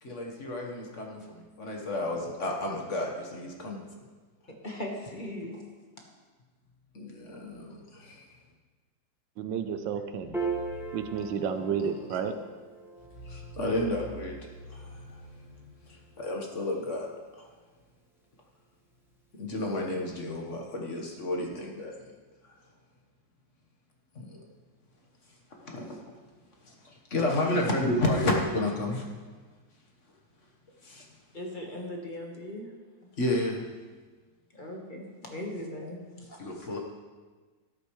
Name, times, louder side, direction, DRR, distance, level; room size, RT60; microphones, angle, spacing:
voice 1, 0.0-3.9 6.9-8.3 13.2-14.4 14.7-17.1 17.4-17.5 19.3-21.9 22.4-22.5 24.1-24.4 25.6-26.0 26.6-29.0 30.8-31.1 33.2-33.6 36.4-36.8, left 1 dB, 45° left, 0 dB, 1.5 m, -31 dB
voice 2, 4.5-5.7 31.3-32.7 33.0-33.1 34.5-36.7, left 1 dB, 30° left, 0 dB, 1.3 m, -39 dB
voice 3, 9.4-10.3 10.9-12.3, right 7 dB, 85° right, 9 dB, 1.5 m, -31 dB
Piano, 10.3-17.0, right 4 dB, ahead, 0.9 m, -40 dB
13.0 x 12.0 x 3.2 m, 1.4 s
omnidirectional pair, 2.0 m